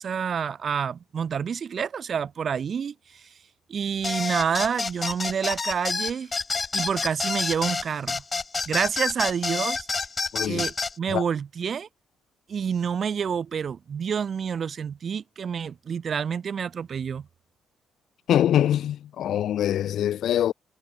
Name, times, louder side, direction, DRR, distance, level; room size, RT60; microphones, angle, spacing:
voice 1, 0.0-3.2 3.7-6.3 6.7-8.2 8.7-9.9 10.5-11.9 12.5-17.3, right 7 dB, 50° right, 5.4 m, -28 dB
sound 1, 4.0-10.9, left 4 dB, 30° left, 1.1 m, -28 dB
voice 2, 10.3-10.6 11.1-11.2 18.3-20.5, left 11 dB, 70° left, 1.1 m, -23 dB
cardioid pair, 90°, 0 cm